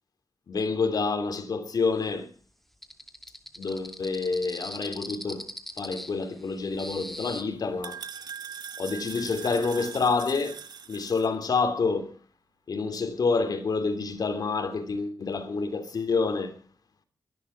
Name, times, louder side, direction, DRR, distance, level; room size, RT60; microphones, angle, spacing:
voice 1, 0.5-2.3 3.6-5.5 5.8-8.0 8.8-12.1 12.7-16.6, left 4 dB, 70° left, 3.1 m, -28 dB
sound 1, 2.8-7.4, equal, 5° left, 2.5 m, -40 dB
sound 2, 6.7-11.3, right 7 dB, 90° right, 1.3 m, -42 dB
23.5 x 11.5 x 4.6 m
wide cardioid pair, 90°, 7 cm